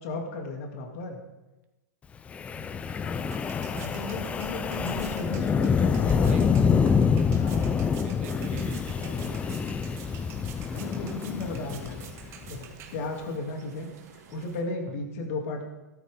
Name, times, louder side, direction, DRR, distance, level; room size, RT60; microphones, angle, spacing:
voice 1, 0.0-1.2 3.7-6.6 7.3-7.7 10.7-12.0 12.5-13.9 14.3-15.6, left 2 dB, 55° left, 2 dB, 2.7 m, -35 dB
Wind, 2.3-12.6, left 6 dB, 15° left, 0.4 m, -26 dB
voice 2, 2.5-3.3 4.1-4.6 6.0-6.4 8.0-10.3 11.7-11.8 12.9-13.1 14.9-15.0, right 9 dB, 55° right, 5 dB, 1.8 m, -46 dB
sound 1, 2.7-13.4, right 7 dB, 30° right, 1.6 m, -48 dB
sound 2, 8.3-14.6, right 6 dB, 75° right, 3.1 m, -52 dB
14.0 x 13.0 x 3.7 m, 1.1 s
hypercardioid pair, 140°, 9 cm